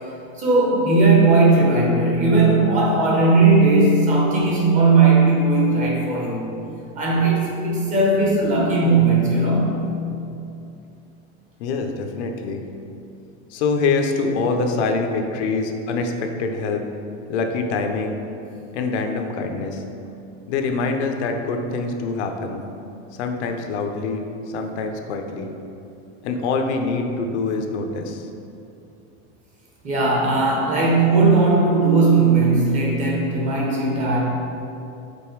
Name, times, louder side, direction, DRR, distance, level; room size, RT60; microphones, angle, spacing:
voice 1, 0.4-6.5 7.0-9.8 29.8-34.3, right 3 dB, 20° right, -3 dB, 1.0 m, -17 dB
voice 2, 11.6-12.6 13.5-16.8 17.3-18.2 18.7-19.8 20.5-22.6 23.2-25.5 26.2-28.3, left 4 dB, 75° left, 4 dB, 0.8 m, -25 dB
5.3 x 4.1 x 4.6 m, 2.7 s
supercardioid pair, 170°, 34 cm